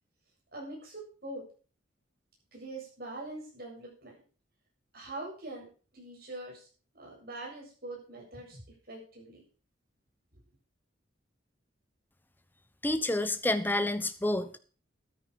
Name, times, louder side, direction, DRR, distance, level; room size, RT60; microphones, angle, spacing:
voice 1, 0.5-1.4 2.5-4.1 4.9-5.7 5.9-6.7 6.9-8.6 8.9-9.4, right 2 dB, 50° right, -3 dB, 7.6 m, -43 dB
voice 2, 12.8-14.6, left 1 dB, 10° left, 11 dB, 0.9 m, -29 dB
13.0 x 10.0 x 5.1 m, 0.39 s
head